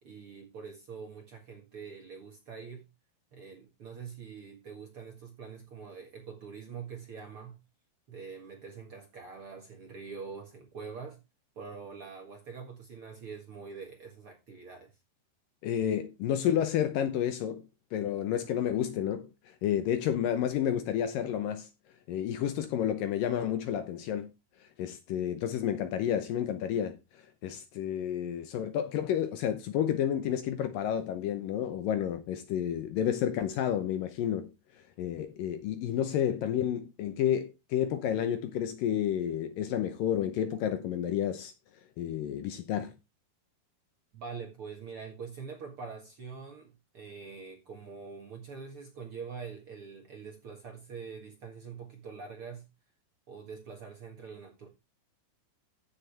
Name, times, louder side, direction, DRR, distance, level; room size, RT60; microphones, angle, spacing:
voice 1, 0.0-2.9 3.3-7.6 8.1-11.2 11.6-15.0 44.1-52.7 53.3-54.7, right 5 dB, 50° right, 1.9 m, -44 dB
voice 2, 15.6-17.6 17.9-19.3 19.6-21.7 22.1-24.3 24.8-27.0 27.4-34.5 35.0-41.5 42.0-42.9, left 10 dB, 70° left, 2.3 m, -30 dB
14.5 x 6.8 x 3.4 m
omnidirectional pair, 4.5 m